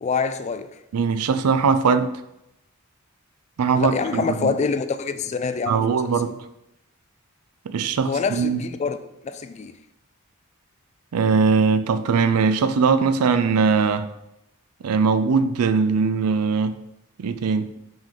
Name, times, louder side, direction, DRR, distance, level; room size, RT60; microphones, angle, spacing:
voice 1, 0.0-0.7 3.7-6.1 8.0-9.7, left 5 dB, 30° left, 0.3 m, -26 dB
voice 2, 0.9-2.1 3.6-4.5 5.7-6.3 7.7-8.6 11.1-14.1 14.8-16.8 17.2-17.7, right 5 dB, 85° right, 0.4 m, -20 dB
5.1 x 3.7 x 5.6 m
head